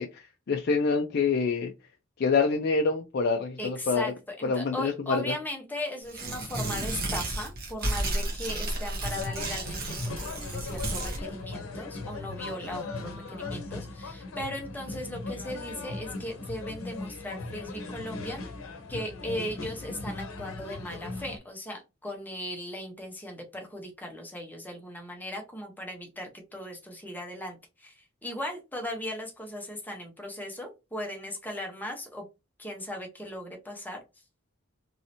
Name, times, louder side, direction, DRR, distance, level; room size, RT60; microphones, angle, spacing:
voice 1, 0.0-1.7 2.2-4.1 4.4-5.4, left 4 dB, 50° left, 0.4 m, -26 dB
voice 2, 3.6-18.4 18.9-32.2 32.6-34.0, left 1 dB, 10° left, 0.8 m, -38 dB
Tearing, 6.0-11.2, right 2 dB, 50° right, 1.1 m, -32 dB
sound 1, 9.0-21.4, left 3 dB, 85° left, 0.7 m, -38 dB
3.1 x 2.7 x 2.8 m
head